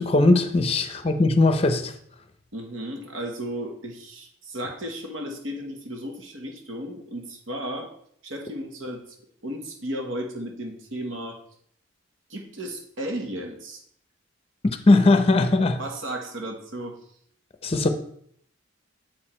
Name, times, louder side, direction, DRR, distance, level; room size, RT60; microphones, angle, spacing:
voice 1, 0.0-1.9 14.6-15.8 17.6-17.9, left 2 dB, 30° left, 0.6 m, -19 dB
voice 2, 2.5-7.9 8.2-9.0 9.4-11.4 12.3-13.8 15.8-17.0, right 1 dB, 75° right, 1.3 m, -34 dB
7.7 x 4.8 x 4.3 m
head